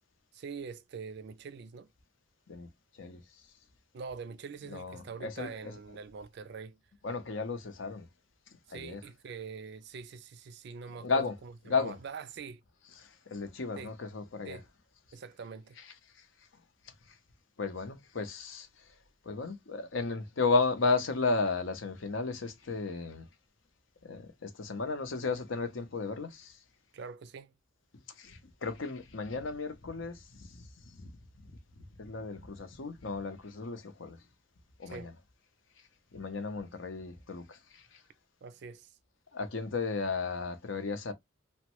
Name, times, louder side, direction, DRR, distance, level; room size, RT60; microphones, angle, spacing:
voice 1, 0.3-1.9 3.9-6.8 8.7-12.6 13.8-13.9 14.4-14.7 15.1-15.8 26.9-27.5 34.9-35.1 38.4-39.0, right 5 dB, 60° right, 0.4 m, -44 dB
voice 2, 4.7-5.5 7.0-8.1 8.7-9.0 11.0-11.3 11.7-12.0 13.0-14.6 17.6-18.7 19.2-23.3 24.0-26.6 28.2-31.1 32.0-34.2 34.8-35.1 36.1-38.0 39.3-41.1, left 4 dB, 80° left, 0.7 m, -34 dB
3.1 x 2.1 x 2.9 m
head